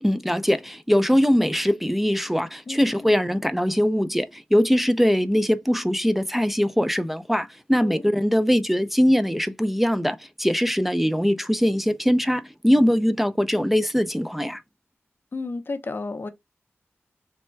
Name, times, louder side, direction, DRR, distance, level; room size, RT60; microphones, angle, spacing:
voice 1, 0.0-14.6, equal, 5° right, 0.4 m, -22 dB
voice 2, 2.7-3.1 7.8-8.0 15.3-16.3, left 3 dB, 50° left, 0.5 m, -32 dB
3.3 x 2.2 x 4.3 m
cardioid pair, 50°, 5 cm